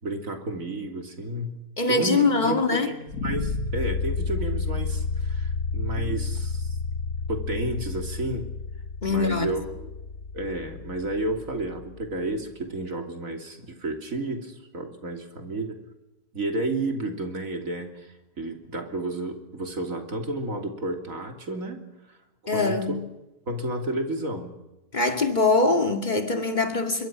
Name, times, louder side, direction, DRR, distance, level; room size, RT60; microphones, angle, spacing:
voice 1, 0.0-1.6 1.9-6.8 7.3-8.5 9.1-9.9 10.3-15.8 16.3-21.8 22.5-23.0 23.5-24.6, right 2 dB, 55° right, 3.5 m, -31 dB
voice 2, 1.8-2.9 9.0-9.6 22.5-23.0 24.9-27.1, left 3 dB, 30° left, 2.2 m, -23 dB
sound 1, 3.1-12.1, left 4 dB, 55° left, 1.8 m, -31 dB
26.0 x 23.0 x 6.2 m
omnidirectional pair, 1.7 m